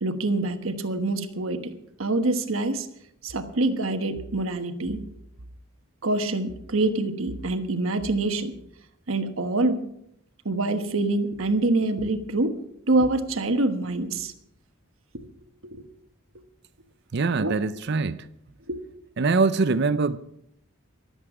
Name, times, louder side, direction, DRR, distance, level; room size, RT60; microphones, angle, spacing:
voice 1, 0.0-1.7 2.0-2.9 3.2-5.0 6.0-8.5 9.1-9.8 10.4-12.6 12.9-14.3 15.7-15.8 17.4-17.5 18.7-18.8, right 2 dB, 75° right, 1.2 m, -25 dB
voice 2, 17.1-18.3 19.2-20.2, right 4 dB, 55° right, 0.5 m, -23 dB
23.5 x 8.1 x 4.9 m
head